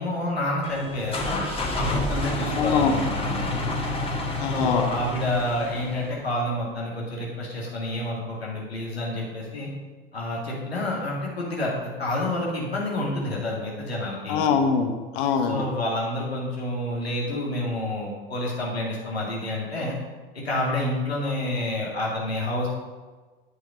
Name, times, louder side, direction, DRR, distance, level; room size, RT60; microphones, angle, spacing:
voice 1, 0.0-1.4 1.7-3.5 4.5-9.7 10.1-14.5 15.5-20.0 20.3-22.7, left 1 dB, 85° left, -4 dB, 2.3 m, -28 dB
sound 1, 0.6-6.2, left 2 dB, 20° left, 1.7 m, -29 dB
voice 2, 2.6-2.9 4.4-4.9 14.3-15.6, left 6 dB, 55° left, 5 dB, 1.2 m, -23 dB
8.8 x 6.4 x 5.2 m, 1.3 s
figure-of-eight pair, 80°, 30 cm